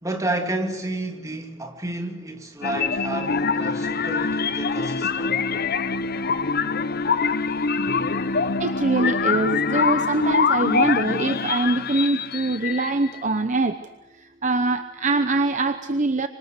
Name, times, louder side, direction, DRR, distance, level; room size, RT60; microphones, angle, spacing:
voice 1, 0.0-5.4, right 2 dB, 15° right, 2.5 m, -30 dB
sound 1, 2.6-13.2, left 5 dB, 50° left, 0.8 m, -24 dB
voice 2, 8.6-13.8 14.4-16.3, right 2 dB, 40° right, 0.9 m, -23 dB
26.0 x 24.5 x 6.7 m
head